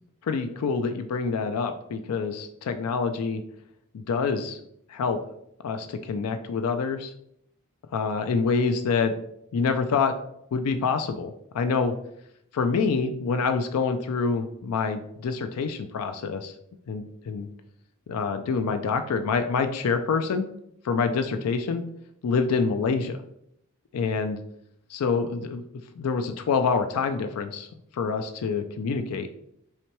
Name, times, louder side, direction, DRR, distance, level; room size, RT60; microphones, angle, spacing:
voice 1, 0.2-3.4 3.9-4.6 4.9-5.2 5.6-7.1 7.9-9.2 9.5-10.1 10.5-11.9 12.5-16.5 16.9-17.5 18.1-20.5 20.8-21.8 22.2-23.2 23.9-24.4 24.9-25.6 26.0-27.7 27.9-29.3, left 5 dB, 85° left, 8 dB, 0.4 m, -26 dB
5.6 x 2.2 x 3.0 m, 0.74 s
head